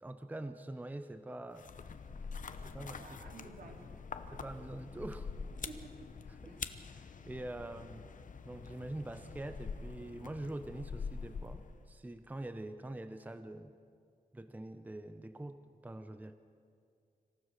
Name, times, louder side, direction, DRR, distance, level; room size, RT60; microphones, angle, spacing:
voice 1, 0.0-1.7 2.6-3.5 4.3-5.3 6.3-6.6 6.9-8.1 8.4-13.8 14.3-16.4, right 1 dB, 10° right, 10 dB, 0.6 m, -45 dB
sound 1, 1.5-11.9, left 5 dB, 55° left, 0.8 m, -45 dB
voice 2, 2.8-4.1 5.6-6.1 6.4-6.6, right 3 dB, 80° right, 1 dB, 3.1 m, -53 dB
26.0 x 15.5 x 6.5 m, 2.3 s
wide cardioid pair, 165°, 16 cm